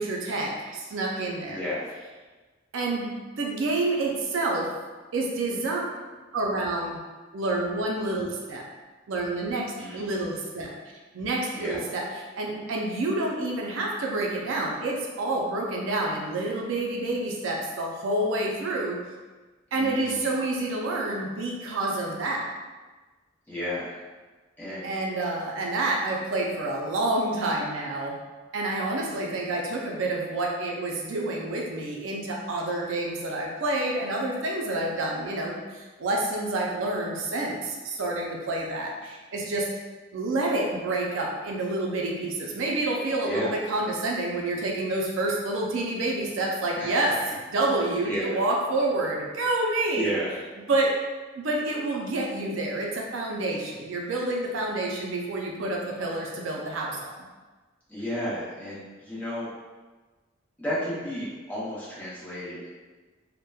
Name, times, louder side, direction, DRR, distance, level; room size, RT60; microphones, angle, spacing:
voice 1, 0.0-1.6 2.7-3.1 3.4-4.7 5.1-5.8 6.3-7.0 7.3-8.6 9.1-10.7 11.1-12.0 12.3-19.0 19.7-22.5 24.8-28.2 28.5-39.7 40.1-47.2 47.5-50.1 50.7-50.9 51.4-57.0, right 2 dB, 70° right, -1 dB, 0.4 m, -28 dB
voice 2, 1.4-1.9 9.8-10.1 11.5-11.8 19.7-20.3 23.5-24.0 24.6-24.9 29.0-29.3 43.2-43.6 46.7-46.9 48.0-48.4 49.9-50.3 57.9-59.5 60.6-62.7, equal, 10° left, -10 dB, 0.8 m, -32 dB
2.8 x 2.1 x 2.2 m, 1.3 s
head